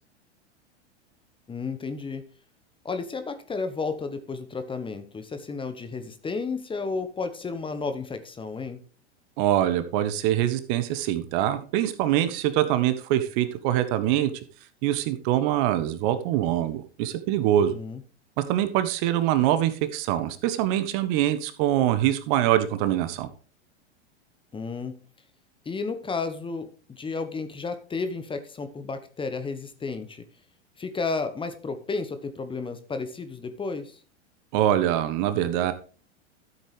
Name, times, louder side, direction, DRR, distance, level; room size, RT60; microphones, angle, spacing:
voice 1, 1.5-2.2 2.8-8.8 17.7-18.0 24.5-25.0 25.6-30.3 30.8-34.0, left 4 dB, 15° left, 9 dB, 1.2 m, -32 dB
voice 2, 9.4-14.3 14.8-17.8 18.4-23.3 34.5-35.7, right 12 dB, 45° right, 12 dB, 1.4 m, -24 dB
13.0 x 7.8 x 3.3 m, 0.38 s
figure-of-eight pair, 95°, 35 cm